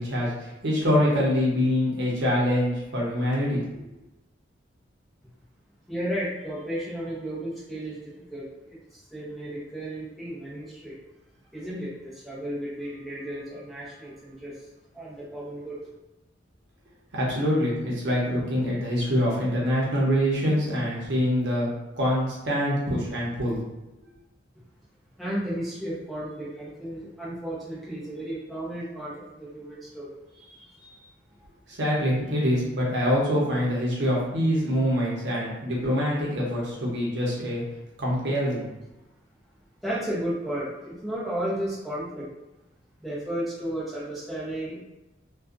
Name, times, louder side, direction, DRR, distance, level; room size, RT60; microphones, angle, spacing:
voice 1, 0.0-3.6 17.1-21.7 22.0-23.6 31.7-37.6 38.0-38.6, equal, 65° right, -5 dB, 0.8 m, -25 dB
voice 2, 5.9-11.0 11.5-14.7 14.9-15.8 25.2-31.0 39.8-42.3 43.0-44.8, right 1 dB, ahead, -9 dB, 0.7 m, -34 dB
2.5 x 2.3 x 2.4 m, 0.97 s
head